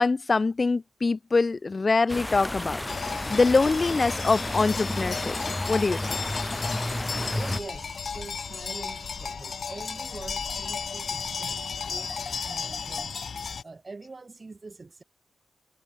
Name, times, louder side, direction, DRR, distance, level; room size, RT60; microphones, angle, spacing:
voice 1, 0.0-2.8 3.3-5.3 5.7-6.2, left 3 dB, 30° left, 1.0 m, -24 dB
sound 1, 2.1-7.6, left 1 dB, 10° left, 4.7 m, -31 dB
sound 2, 2.9-13.6, left 6 dB, 50° left, 6.5 m, -34 dB
voice 2, 7.1-13.2 13.6-15.0, right 3 dB, 25° right, 7.8 m, -44 dB
wide cardioid pair, 140°, 0 cm